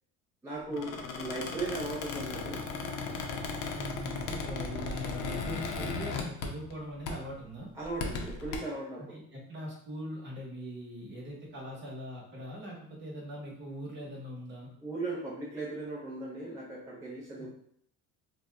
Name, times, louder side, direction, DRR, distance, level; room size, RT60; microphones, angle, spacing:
voice 1, 0.4-2.6 7.8-9.2 14.8-17.5, right 2 dB, 10° right, -7 dB, 0.5 m, -37 dB
Squeak, 0.7-6.8 7.1-7.3 7.8-8.6, left 4 dB, 70° left, 0.6 m, -36 dB
voice 2, 3.7-7.7 9.0-14.7 17.4-17.5, equal, 35° right, -2 dB, 0.9 m, -42 dB
2.7 x 2.2 x 3.3 m, 0.69 s
cardioid pair, 145°, 34 cm